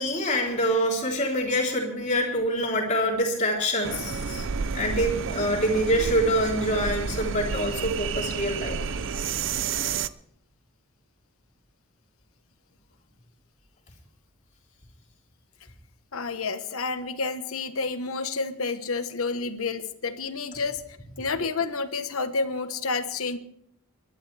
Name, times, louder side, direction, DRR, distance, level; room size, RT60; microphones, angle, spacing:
voice 1, 0.0-4.4 4.7-8.8, equal, 35° left, -1 dB, 3.6 m, -25 dB
sound 1, 3.8-10.1, right 6 dB, 60° right, 0.5 m, -30 dB
voice 2, 16.1-20.8 21.2-23.4, left 4 dB, 80° left, 10 dB, 1.2 m, -29 dB
29.5 x 12.0 x 3.4 m, 0.71 s
head